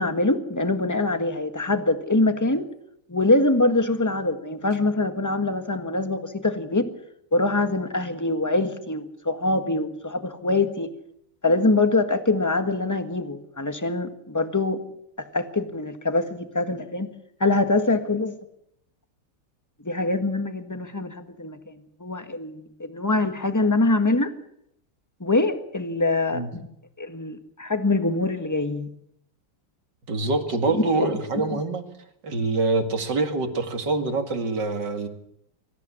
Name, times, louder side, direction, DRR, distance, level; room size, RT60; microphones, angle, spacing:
voice 1, 0.0-2.7 3.1-6.9 7.3-10.9 11.4-14.8 15.2-17.1 17.4-18.3 19.8-24.3 25.2-26.7 27.0-28.9 30.7-31.6, left 2 dB, 10° left, 8 dB, 1.2 m, -24 dB
voice 2, 30.1-31.8 32.2-35.1, right 3 dB, 50° right, 6 dB, 2.7 m, -25 dB
24.5 x 14.5 x 8.5 m, 0.75 s
omnidirectional pair, 2.4 m